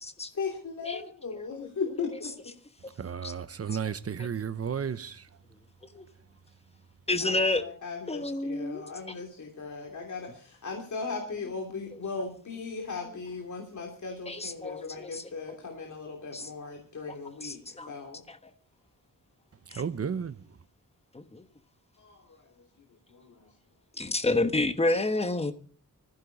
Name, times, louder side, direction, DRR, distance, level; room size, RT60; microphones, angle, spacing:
voice 1, 0.3-2.3 7.2-17.6 17.9-18.2 22.0-22.2 23.1-23.5, left 4 dB, 60° left, 3.1 m, -37 dB
voice 2, 3.0-5.3 19.7-20.4, right 7 dB, 45° right, 0.9 m, -33 dB
voice 3, 7.1-7.6 8.1-8.8 11.9-12.0 14.3-15.3 16.3-16.5 17.4-17.9 18.3-18.4 19.7-19.8 21.1-21.4 24.0-25.5, left 2 dB, 20° left, 1.3 m, -29 dB
20.0 x 15.0 x 4.0 m
wide cardioid pair, 170°, 33 cm